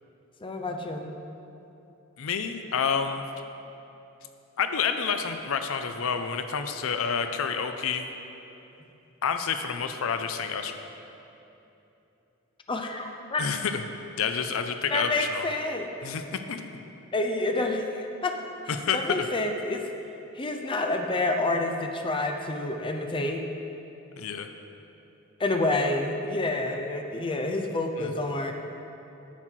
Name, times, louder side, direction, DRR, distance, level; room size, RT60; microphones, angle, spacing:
voice 1, 0.4-1.1 12.7-13.4 14.9-15.9 17.1-18.4 18.6-19.8 20.3-23.5 25.4-28.5, left 2 dB, 25° left, 3 dB, 0.6 m, -28 dB
voice 2, 2.2-3.2 4.6-8.1 9.2-10.8 13.4-13.8 14.2-15.5 16.0-16.8 18.9-19.0 24.2-24.5 28.0-28.1, left 6 dB, 70° left, 7 dB, 0.5 m, -29 dB
10.0 x 7.5 x 4.5 m, 2.9 s
head